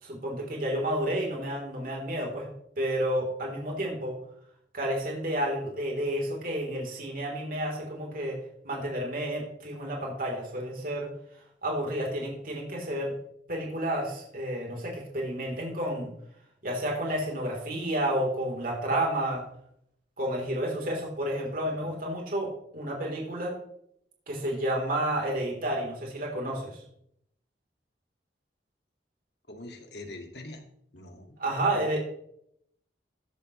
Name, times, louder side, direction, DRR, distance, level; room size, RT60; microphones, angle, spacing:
voice 1, 0.0-2.5 2.8-4.2 4.7-8.4 8.6-11.1 11.6-13.1 13.5-16.1 16.6-19.4 20.2-23.6 24.3-26.8 31.4-32.0, right 1 dB, 55° right, -1 dB, 3.7 m, -30 dB
voice 2, 29.5-30.6 30.9-31.9, left 2 dB, 65° left, 4 dB, 2.2 m, -44 dB
15.5 x 11.0 x 3.2 m, 0.72 s
head